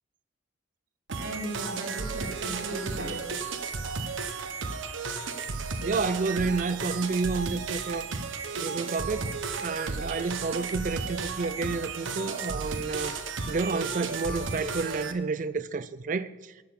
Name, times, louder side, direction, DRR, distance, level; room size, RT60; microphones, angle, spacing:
voice 1, 1.1-3.2, right 1 dB, 60° right, 1.7 m, -36 dB
sound 1, 1.1-15.1, right 4 dB, 80° right, 0.9 m, -34 dB
voice 2, 5.8-8.2 8.6-9.3 9.6-13.2 13.5-16.3, right 4 dB, 40° right, 0.4 m, -30 dB
10.5 x 6.8 x 7.1 m
head